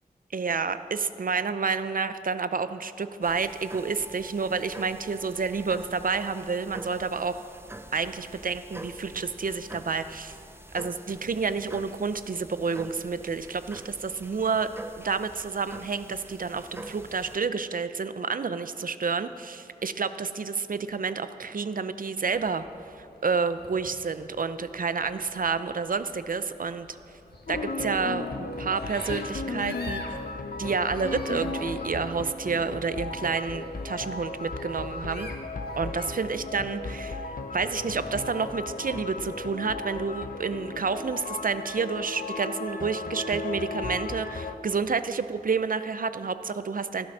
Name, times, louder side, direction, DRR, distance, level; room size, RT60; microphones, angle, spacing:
voice 1, 0.3-7.4 7.9-10.4 10.7-14.7 15.0-22.7 23.0-27.0 27.5-30.0 30.6-35.3 35.8-37.3 37.5-47.1, right 5 dB, 60° right, 12 dB, 0.5 m, -29 dB
sound 1, 3.2-17.4, right 1 dB, 15° right, 0.6 m, -45 dB
sound 2, 22.2-36.1, left 2 dB, 85° left, 1.4 m, -47 dB
sound 3, 27.5-44.6, left 3 dB, 60° left, 0.7 m, -35 dB
14.0 x 9.5 x 6.1 m, 2.5 s
wide cardioid pair, 90°, 16 cm